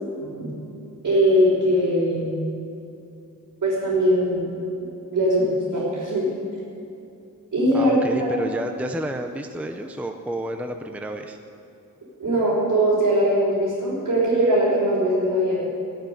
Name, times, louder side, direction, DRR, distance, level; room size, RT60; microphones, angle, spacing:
voice 1, 0.2-0.5 1.0-2.3 3.6-4.5 5.1-6.3 7.5-8.3 12.2-15.6, equal, 70° right, -9 dB, 4.6 m, -21 dB
voice 2, 7.7-11.4, right 1 dB, 5° right, 5 dB, 0.6 m, -30 dB
19.5 x 6.8 x 9.9 m, 2.7 s
wide cardioid pair, 175°, 33 cm